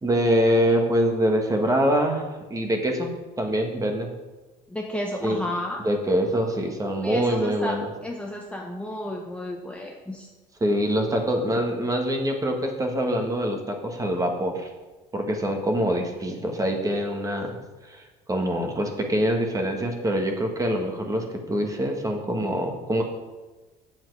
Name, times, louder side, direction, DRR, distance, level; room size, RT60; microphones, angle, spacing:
voice 1, 0.0-3.1 3.4-4.1 5.2-5.4 5.8-7.9 10.6-14.7 15.1-17.6 17.9-18.0 18.3-23.0, equal, 20° right, 3 dB, 1.7 m, -24 dB
voice 2, 4.7-5.8 7.0-10.3, left 1 dB, 5° left, 0 dB, 1.0 m, -32 dB
7.7 x 7.4 x 4.8 m, 1.2 s
supercardioid pair, 75°, 17 cm